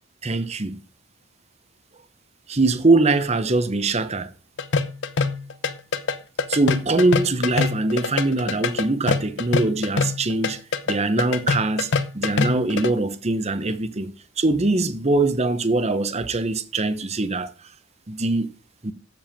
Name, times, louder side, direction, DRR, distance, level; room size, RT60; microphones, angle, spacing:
voice 1, 0.2-0.8 2.5-4.3 6.5-10.6 10.9-17.5 18.1-18.5 18.8-18.9, right 2 dB, 30° right, 0.9 m, -22 dB
sound 1, 4.6-12.9, left 4 dB, 55° left, 0.8 m, -24 dB
7.6 x 7.1 x 7.1 m
head